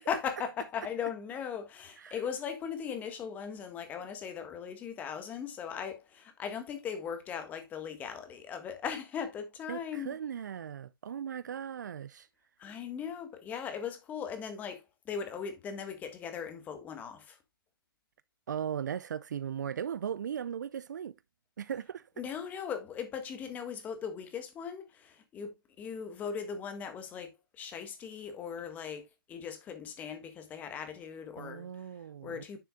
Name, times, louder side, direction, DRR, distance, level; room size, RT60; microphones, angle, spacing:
voice 1, 0.1-10.2 12.6-17.4 22.2-27.3 27.6-31.7 32.2-32.6, left 7 dB, 15° left, 1.5 m, -39 dB
voice 2, 9.7-12.3 18.5-21.1 21.6-22.0 31.4-32.4, right 8 dB, 50° right, 0.5 m, -38 dB
10.0 x 6.7 x 2.4 m
hypercardioid pair, 145°, 12 cm